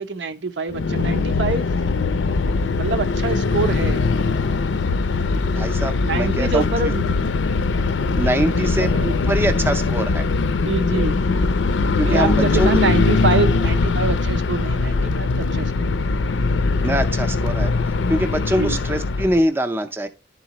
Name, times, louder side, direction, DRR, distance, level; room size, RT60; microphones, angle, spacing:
voice 1, 0.0-1.7 2.8-4.2 6.0-7.1 8.6-9.1 10.6-11.2 12.0-16.0 18.6-18.8, right 4 dB, 75° right, 0.7 m, -25 dB
sound 1, 0.7-19.4, left 3 dB, 85° left, 0.5 m, -21 dB
voice 2, 5.4-6.6 8.2-10.3 12.0-12.8 16.8-17.7 18.1-20.1, right 1 dB, 10° right, 0.5 m, -23 dB
11.0 x 4.0 x 2.9 m
head